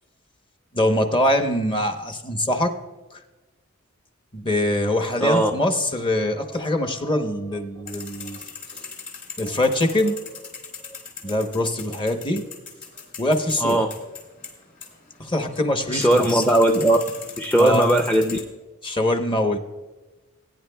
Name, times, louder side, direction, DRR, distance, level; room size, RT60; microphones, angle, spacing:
voice 1, 0.7-2.7 3.1-3.2 4.3-8.4 9.4-10.2 11.2-12.4 13.2-13.8 15.2-16.4 17.6-17.9 18.8-19.6, left 1 dB, 25° left, 5 dB, 0.9 m, -23 dB
voice 2, 5.2-5.5 13.6-13.9 15.9-17.0 17.4-18.4, right 1 dB, 10° left, 2 dB, 0.5 m, -18 dB
sound 1, 7.9-18.4, left 5 dB, 40° left, 2.9 m, -40 dB
19.5 x 9.8 x 2.3 m, 1.2 s
head